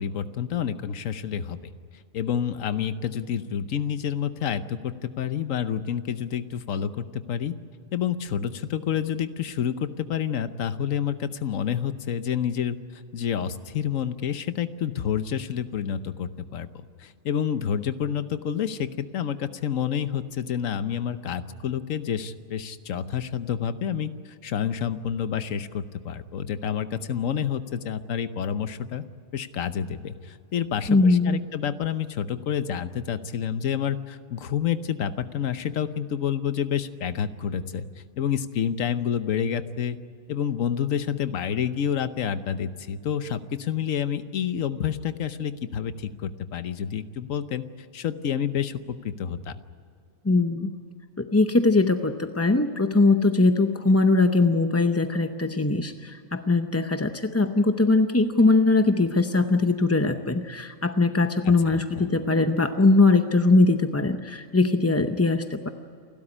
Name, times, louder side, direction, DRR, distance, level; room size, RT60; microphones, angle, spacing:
voice 1, 0.0-1.7 2.1-7.5 7.9-16.7 17.0-29.0 29.3-37.8 38.2-40.0 40.3-47.6 47.9-49.6 61.7-61.8, left 8 dB, 70° left, 12 dB, 1.2 m, -29 dB
voice 2, 30.9-31.4 50.2-50.7 51.2-65.7, left 3 dB, 20° left, 7 dB, 0.4 m, -21 dB
28.5 x 12.5 x 9.9 m, 2.3 s
omnidirectional pair, 1.4 m